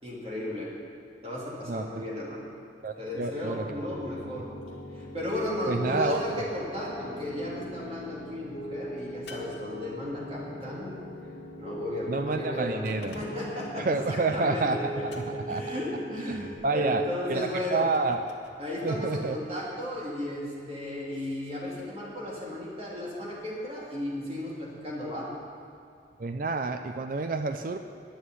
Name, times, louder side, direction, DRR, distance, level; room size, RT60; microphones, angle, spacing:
voice 1, 0.0-0.7 1.2-2.5 3.0-4.5 4.9-10.9 11.6-15.1 15.5-17.9 18.6-25.3, left 1 dB, 35° right, -5 dB, 2.9 m, -34 dB
voice 2, 1.7-2.0 2.8-3.7 5.7-6.2 12.1-13.2 13.8-15.8 16.3-17.0 17.3-18.2 18.8-19.4 26.2-27.8, right 3 dB, 50° right, 8 dB, 0.5 m, -29 dB
Piano, 3.6-16.5, right 1 dB, 45° left, 1.4 m, -40 dB
sound 1, 9.3-10.4 12.8-13.6 15.1-15.7 17.9-18.6, left 3 dB, 70° left, 1.5 m, -49 dB
10.5 x 7.9 x 9.7 m, 2.5 s
head